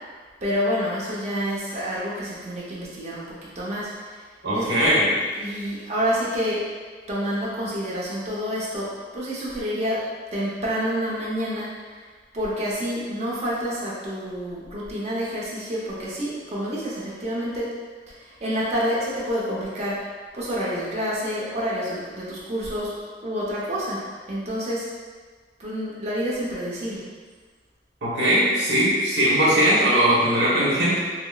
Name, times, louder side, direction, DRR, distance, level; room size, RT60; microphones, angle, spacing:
voice 1, 0.4-3.2 3.5-3.9 4.5-4.7 5.3-6.6 7.1-8.9 9.1-10.0 10.3-11.7 12.3-17.7 18.4-20.0 20.3-22.9 23.2-24.0 24.3-24.9 25.6-27.0, equal, 40° right, -7 dB, 0.9 m, -28 dB
voice 2, 4.4-5.1 28.0-31.0, equal, 80° right, -6 dB, 1.2 m, -20 dB
6.1 x 2.0 x 2.4 m, 1.5 s
head